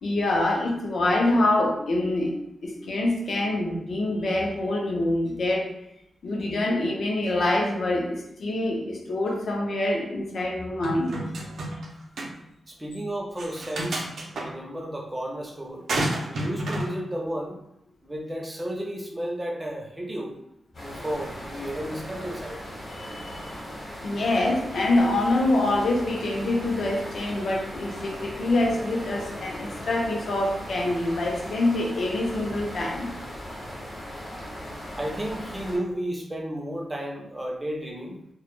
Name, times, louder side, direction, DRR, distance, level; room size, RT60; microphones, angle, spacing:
voice 1, 0.0-2.3 2.6-5.7 6.2-11.2 23.0-23.5 24.0-33.1, left 2 dB, 65° left, -1 dB, 0.5 m, -25 dB
sound 1, 10.8-11.9 12.2-12.3 13.4-14.5 15.9-16.9, right 1 dB, 80° right, 0.4 m, -29 dB
voice 2, 12.7-15.9 16.2-17.6 18.0-20.4 20.8-22.6 35.0-38.2, right 1 dB, 15° right, 0 dB, 0.4 m, -33 dB
sound 2, 20.7-35.8, equal, 45° left, 0.9 m, -38 dB
2.1 x 2.0 x 2.9 m, 0.81 s
wide cardioid pair, 140°, 0 cm